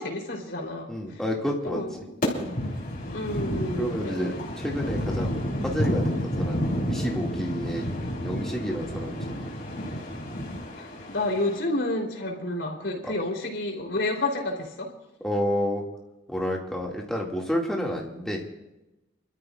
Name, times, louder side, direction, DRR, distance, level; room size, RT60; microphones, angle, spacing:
voice 1, 0.0-1.2 1.6-2.6 3.1-4.3 10.8-14.9, left 2 dB, 70° left, -1 dB, 3.4 m, -30 dB
voice 2, 0.9-1.8 3.8-7.9 8.2-9.5 13.0-13.1 15.2-15.8 16.3-18.4, equal, 5° left, -2 dB, 2.1 m, -30 dB
sound 1, 2.2-11.6, equal, 50° left, 3.4 m, -30 dB
27.0 x 13.0 x 2.4 m, 0.98 s
head